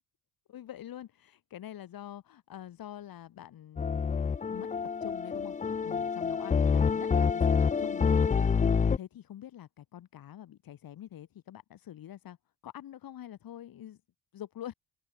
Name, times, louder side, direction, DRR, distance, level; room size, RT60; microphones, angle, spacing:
voice 1, 0.5-4.1 4.5-4.7 5.0-5.6 5.8-12.4 12.6-14.0 14.3-14.7, left 11 dB, 65° left, 3.3 m, -46 dB
sound 1, 3.8-9.0, left 6 dB, 20° left, 0.5 m, -27 dB
open air
cardioid pair, 165°, 37 cm